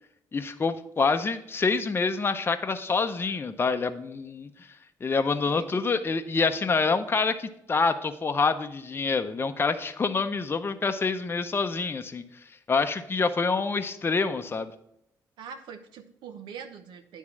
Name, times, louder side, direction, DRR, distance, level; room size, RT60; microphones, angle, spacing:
voice 1, 0.3-4.5 5.0-12.2 12.7-14.7, left 4 dB, 30° left, 8 dB, 0.6 m, -26 dB
voice 2, 15.4-17.2, right 7 dB, 85° right, 7 dB, 0.7 m, -43 dB
9.5 x 3.6 x 6.0 m, 0.76 s
cardioid pair, 85°, 8 cm